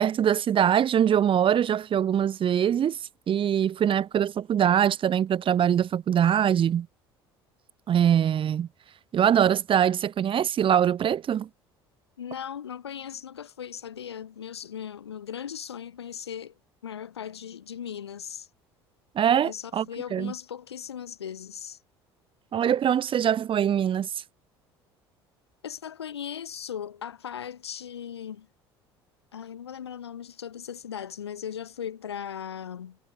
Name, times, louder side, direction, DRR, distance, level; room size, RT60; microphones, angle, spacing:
voice 1, 0.0-3.0 3.3-6.9 7.9-8.7 9.1-11.5 19.2-19.9 20.1-20.3 22.5-24.1, right 9 dB, 40° right, 2.0 m, -23 dB
voice 2, 12.2-16.5 16.8-18.5 19.4-21.8 25.6-28.5 29.3-33.0, left 8 dB, 80° left, 3.7 m, -38 dB
figure-of-eight pair, 60°, 13 cm